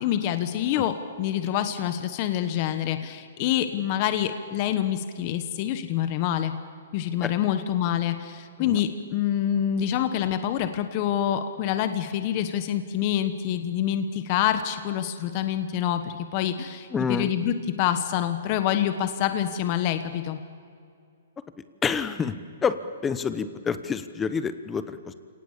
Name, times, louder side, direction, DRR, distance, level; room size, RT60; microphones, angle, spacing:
voice 1, 0.0-6.5 6.9-20.4, left 10 dB, 35° left, 9 dB, 1.3 m, -26 dB
voice 2, 16.9-17.3 21.8-22.4 22.6-22.8 23.0-25.1, left 6 dB, 15° left, 12 dB, 1.0 m, -28 dB
29.0 x 18.5 x 7.3 m, 2.3 s
hypercardioid pair, 150°, 0 cm